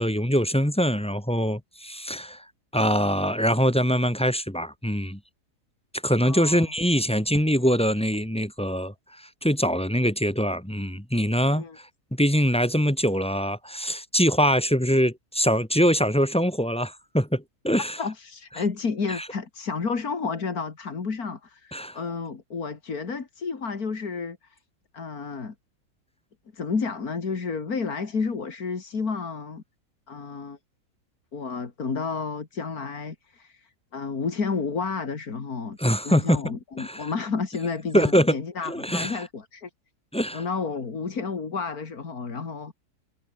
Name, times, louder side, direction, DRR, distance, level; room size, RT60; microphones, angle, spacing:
voice 1, 0.0-2.4 2.7-5.2 6.0-8.9 9.4-11.6 12.1-18.0 21.7-22.0 35.8-36.4 36.8-37.1 37.9-38.4 38.7-39.2 40.1-40.4, equal, 5° left, 2.0 m, -23 dB
voice 2, 6.2-6.7 11.5-11.8 18.0-24.6 24.9-25.5 26.5-29.6 30.1-30.6 31.3-35.8 36.0-39.7 40.3-42.7, left 5 dB, 65° left, 2.9 m, -31 dB
omnidirectional pair, 1.7 m